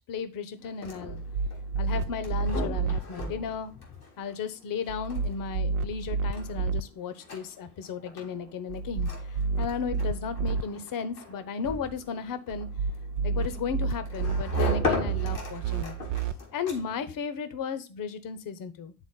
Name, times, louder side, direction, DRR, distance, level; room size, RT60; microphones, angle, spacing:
voice 1, 0.1-1.2 1.8-3.7 4.2-12.7 13.2-15.9 16.5-18.9, left 6 dB, 50° left, 12 dB, 0.9 m, -35 dB
sound 1, 0.6-17.1, equal, 90° left, 1.3 m, -37 dB
sound 2, 1.1-3.0 4.9-6.8 8.7-10.6 12.5-16.3, right 4 dB, 45° right, 0.5 m, -30 dB
9.0 x 3.8 x 3.7 m, 0.32 s
figure-of-eight pair, 45°, 43 cm